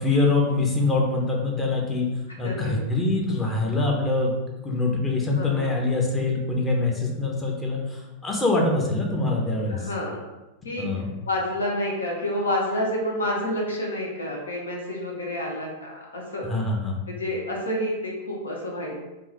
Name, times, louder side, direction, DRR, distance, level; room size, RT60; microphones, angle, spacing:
voice 1, 0.0-2.1 2.4-4.3 4.6-9.9 10.8-11.1 16.4-17.0, left 3 dB, 15° left, -1 dB, 0.8 m, -24 dB
voice 2, 2.4-2.8 5.4-5.8 9.7-10.2 10.6-16.5 17.1-18.9, left 1 dB, 70° left, -2 dB, 0.8 m, -29 dB
3.7 x 2.5 x 2.9 m, 1.0 s
figure-of-eight pair, 90°, 0 cm